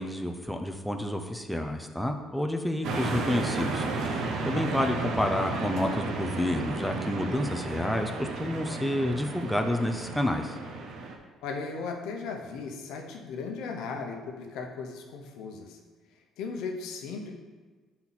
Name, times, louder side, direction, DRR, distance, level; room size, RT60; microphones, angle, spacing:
voice 1, 0.0-10.6, left 1 dB, ahead, 4 dB, 0.4 m, -29 dB
sound 1, 2.8-11.2, right 3 dB, 65° right, 0.8 m, -33 dB
voice 2, 4.6-4.9 11.4-15.8 16.4-17.3, left 4 dB, 85° left, 2 dB, 0.8 m, -37 dB
5.8 x 4.3 x 4.1 m, 1.4 s
cardioid pair, 130°, 0 cm